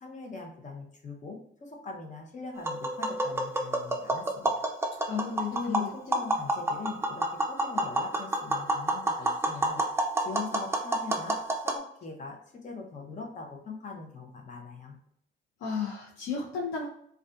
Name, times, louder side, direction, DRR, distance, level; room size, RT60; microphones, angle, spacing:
voice 1, 0.0-4.7 4.9-5.1 5.5-11.4 11.6-15.0, left 4 dB, 40° left, 1 dB, 0.7 m, -41 dB
Tap, 2.6-11.8, right 1 dB, 10° right, 0.4 m, -29 dB
voice 2, 5.1-5.9 15.6-16.9, left 6 dB, 80° left, -5 dB, 0.5 m, -33 dB
2.5 x 2.3 x 2.2 m, 0.70 s
cardioid pair, 90°, 20 cm